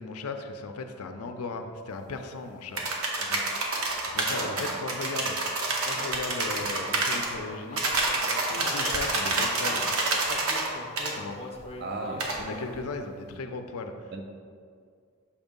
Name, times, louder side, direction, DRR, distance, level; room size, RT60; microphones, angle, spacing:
voice 1, 0.0-2.8 3.2-3.4 4.1-5.4 5.8-8.1 8.5-10.1 11.1-11.4 12.4-14.1, left 3 dB, 80° left, 6 dB, 0.5 m, -37 dB
buckling spring keyboard typing, 2.8-7.3 7.8-10.7 11.0-11.1 12.2-12.4, right 2 dB, 75° right, 0.9 m, -28 dB
voice 2, 4.3-4.7 11.8-12.3 14.1-14.2, right 2 dB, 45° right, 3 dB, 0.4 m, -35 dB
Human voice, 5.9-9.8 10.3-13.0, left 2 dB, 30° left, 0.5 m, -43 dB
7.0 x 2.6 x 5.1 m, 2.1 s
head